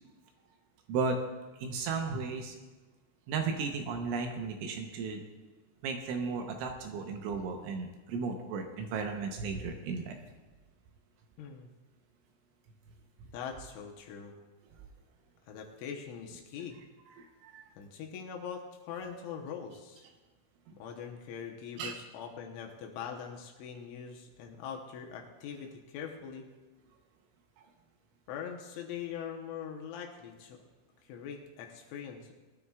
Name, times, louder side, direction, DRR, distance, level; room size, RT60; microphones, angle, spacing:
voice 1, 1.6-2.5 3.3-5.2 5.8-10.2 17.2-17.6 21.8-22.0, right 4 dB, 75° right, 4 dB, 3.1 m, -35 dB
voice 2, 11.4-11.7 13.3-14.3 15.5-16.8 17.8-20.0 20.8-26.4 28.3-30.6 31.0-32.3, left 7 dB, 75° left, 2 dB, 3.2 m, -42 dB
20.0 x 12.5 x 2.4 m, 1.2 s
omnidirectional pair, 6.0 m